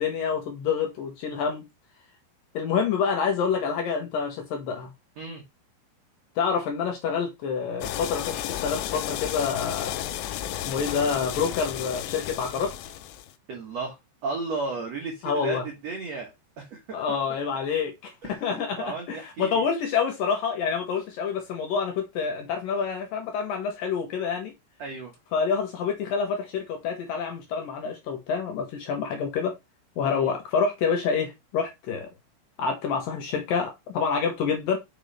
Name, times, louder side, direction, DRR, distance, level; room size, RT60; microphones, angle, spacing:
voice 1, 0.0-1.6 2.5-4.9 6.4-9.9 10.7-12.7 15.2-15.6 16.9-24.5 25.3-29.5 30.0-32.1 32.6-34.8, left 6 dB, 65° left, 2.4 m, -27 dB
sound 1, 7.8-13.3, left 12 dB, 90° left, 2.9 m, -33 dB
voice 2, 13.5-14.0 14.2-16.3 16.6-17.2 18.2-19.6 24.8-25.1 30.0-30.3, right 3 dB, 75° right, 1.5 m, -34 dB
6.5 x 5.3 x 3.2 m
omnidirectional pair, 5.0 m